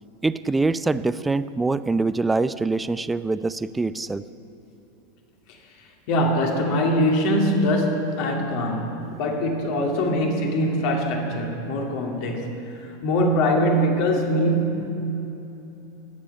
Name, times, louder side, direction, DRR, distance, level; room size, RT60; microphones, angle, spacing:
voice 1, 0.2-4.2, right 3 dB, 10° right, 15 dB, 0.4 m, -24 dB
voice 2, 6.1-12.5 13.0-14.8, equal, 45° left, 2 dB, 2.5 m, -22 dB
22.5 x 9.8 x 5.5 m, 3.0 s
figure-of-eight pair, 90°, 0 cm